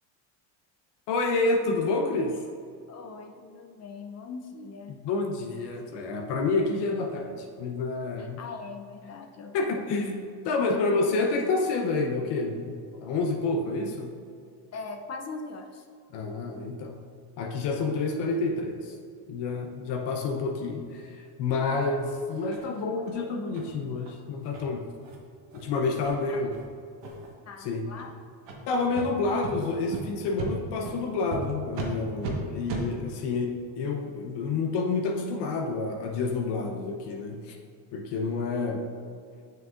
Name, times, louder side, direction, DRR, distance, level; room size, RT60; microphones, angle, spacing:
voice 1, 1.1-2.4 5.0-8.4 9.5-14.1 16.1-17.0 17.4-18.9 19.3-24.9 25.5-26.6 27.6-27.9 28.7-37.6 37.9-38.9, left 3 dB, 65° left, 2 dB, 0.8 m, -29 dB
voice 2, 2.9-5.0 8.2-10.0 10.8-11.1 14.7-15.9 26.3-26.5 27.5-28.1, left 4 dB, 35° left, 4 dB, 0.5 m, -41 dB
sound 1, 22.5-22.6 23.1-23.2 23.5-23.7 24.0-24.1 24.5-24.6 25.0-25.2 25.5-25.6 26.0-26.1 26.5-26.6 27.0-27.3 27.9-28.1 28.4-28.6 28.9-29.1 29.4-29.5 29.9-30.0 30.4-30.5 30.8-31.0 31.3-31.4 31.7-31.9 32.2-32.3 32.7-32.8, right 5 dB, 70° right, 1.3 m, -36 dB
6.9 x 6.3 x 2.5 m, 2.4 s
supercardioid pair, 100°, 45 cm